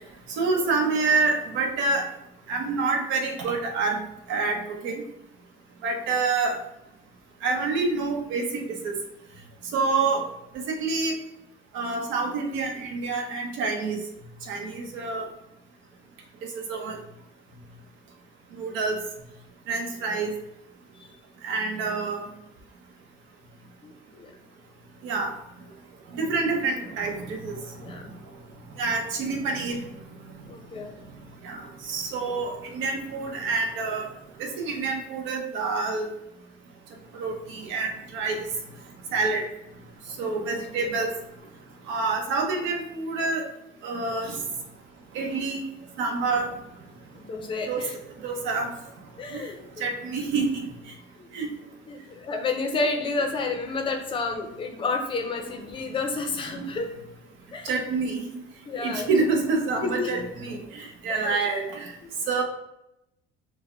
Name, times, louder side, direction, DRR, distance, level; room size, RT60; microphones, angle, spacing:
voice 1, 0.3-2.1 2.5-4.0 4.3-5.0 5.8-6.6 7.4-8.9 9.7-10.2 10.5-11.1 11.7-14.0 14.5-15.3 16.7-17.0 18.6-19.0 19.7-20.3 21.4-22.3 25.0-25.3 26.1-27.5 28.8-29.8 31.4-34.1 34.4-36.1 37.1-38.5 39.1-39.4 40.2-41.1 41.9-43.5 43.8-44.4 45.1-45.6 46.0-46.5 47.7-47.8 48.2-48.7 49.3-49.4 49.8-50.6 51.3-51.5 57.6-58.2 58.8-61.9 62.3-62.4, right 4 dB, 70° right, 2 dB, 0.9 m, -27 dB
voice 2, 23.8-24.3 27.8-28.1 30.4-31.0 47.1-47.9 49.2-49.9 51.2-51.3 51.9-56.9 57.5-57.7 58.7-59.1 59.8-60.1 61.1-61.4 62.0-62.1, left 3 dB, 25° left, 4 dB, 0.6 m, -30 dB
4.5 x 2.1 x 4.3 m, 0.86 s
cardioid pair, 165°, 21 cm